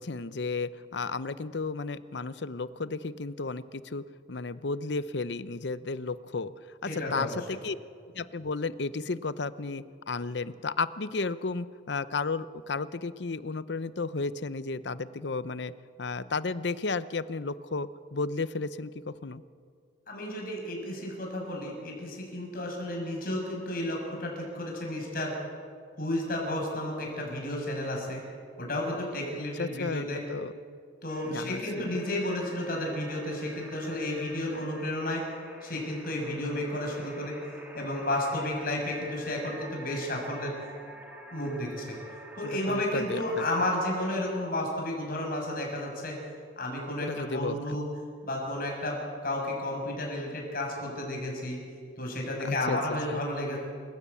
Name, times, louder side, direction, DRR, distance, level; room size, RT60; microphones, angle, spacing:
voice 1, 0.0-6.5 6.8-7.8 8.1-15.7 16.0-19.4 29.6-30.5 31.3-32.0 42.4-43.6 47.0-47.8 52.4-53.2, left 3 dB, 70° left, 15 dB, 0.7 m, -33 dB
voice 2, 6.9-7.4 20.1-25.3 26.0-28.2 28.6-30.2 31.0-35.3 35.6-37.4 37.7-40.5 41.3-42.0 42.4-46.2 46.6-47.8 48.2-51.6 52.0-53.6, left 1 dB, 50° left, 0 dB, 6.8 m, -32 dB
sound 1, 31.1-44.2, right 1 dB, 10° right, 3.3 m, -48 dB
28.0 x 15.5 x 8.5 m, 2.2 s
head